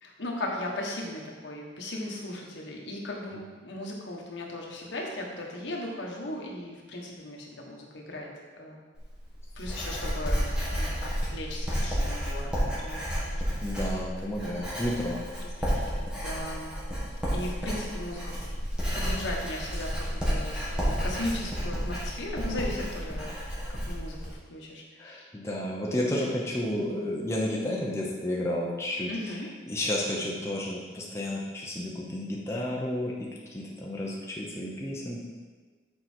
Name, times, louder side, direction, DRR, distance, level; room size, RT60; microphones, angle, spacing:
voice 1, 0.0-8.3 8.6-8.8 9.5-13.4 13.7-14.0 15.4-16.7 17.3-18.3 18.9-25.3 25.9-26.3 29.1-29.5, left 1 dB, 75° left, -1 dB, 1.2 m, -37 dB
Writing, 9.0-24.3, equal, 5° right, 1.6 m, -31 dB
voice 2, 13.6-15.2 25.0-29.3 29.7-33.1 33.5-35.2, left 1 dB, 15° left, -4 dB, 0.8 m, -31 dB
6.8 x 4.5 x 4.4 m, 1.4 s
head